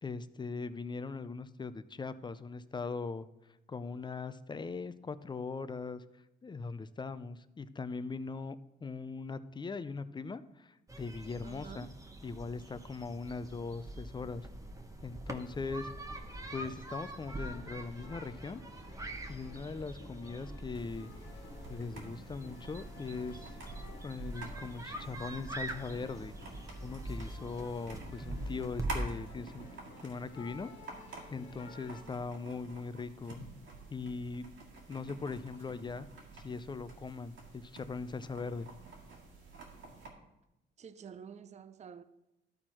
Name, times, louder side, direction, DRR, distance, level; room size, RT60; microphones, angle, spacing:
voice 1, 0.0-3.3 3.7-6.0 6.4-8.6 8.8-11.9 12.2-14.5 15.0-15.9 16.5-18.6 19.3-21.1 21.7-23.6 24.0-26.3 26.8-29.7 30.0-30.7 31.3-33.4 33.9-34.4 34.9-36.1 36.3-38.7, left 4 dB, 25° left, 0.5 m, -40 dB
sound 1, 10.9-29.0, right 1 dB, 15° right, 0.9 m, -44 dB
voice 2, 11.4-11.9 40.8-42.0, right 7 dB, 35° right, 0.5 m, -49 dB
sound 2, 14.4-32.0, left 3 dB, 70° left, 1.6 m, -55 dB
sound 3, 20.7-40.1, right 3 dB, 85° right, 1.9 m, -50 dB
13.0 x 4.4 x 4.4 m
cardioid pair, 90°, 20 cm